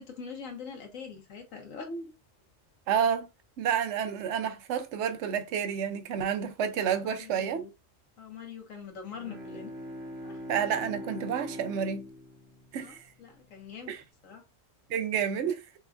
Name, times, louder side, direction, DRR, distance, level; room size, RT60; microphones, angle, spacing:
voice 1, 0.0-2.1 7.0-7.7 8.2-9.7 10.2-10.4 12.8-14.0 14.2-14.4, left 5 dB, 85° left, 1.6 m, -43 dB
voice 2, 2.9-3.3 3.6-7.6 10.5-12.1 12.7-13.0 13.9-14.0 14.9-15.6, right 8 dB, 70° right, 1.0 m, -29 dB
Bowed string instrument, 9.0-13.6, equal, 85° right, 1.3 m, -42 dB
6.0 x 2.4 x 2.5 m
omnidirectional pair, 1.3 m